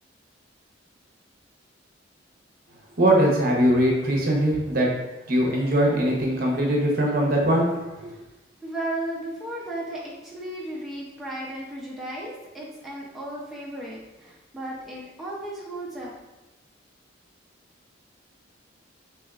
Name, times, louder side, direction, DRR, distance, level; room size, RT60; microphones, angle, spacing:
voice 1, 3.0-4.9 5.3-7.7, right 1 dB, 45° right, -2 dB, 0.8 m, -21 dB
voice 2, 8.6-16.1, right 1 dB, ahead, -6 dB, 0.5 m, -35 dB
3.4 x 3.2 x 2.4 m, 1.1 s
head